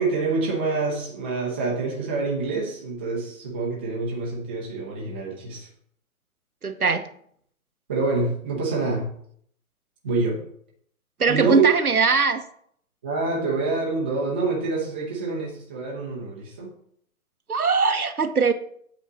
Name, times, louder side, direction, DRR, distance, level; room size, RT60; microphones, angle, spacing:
voice 1, 0.0-5.7 7.9-9.0 10.0-10.4 11.3-11.7 13.0-16.7, right 3 dB, 10° right, -3 dB, 0.5 m, -26 dB
voice 2, 6.6-7.0 11.2-12.4 17.5-18.5, right 4 dB, 85° right, 8 dB, 1.0 m, -21 dB
8.1 x 4.2 x 6.2 m, 0.64 s
figure-of-eight pair, 130°, 43 cm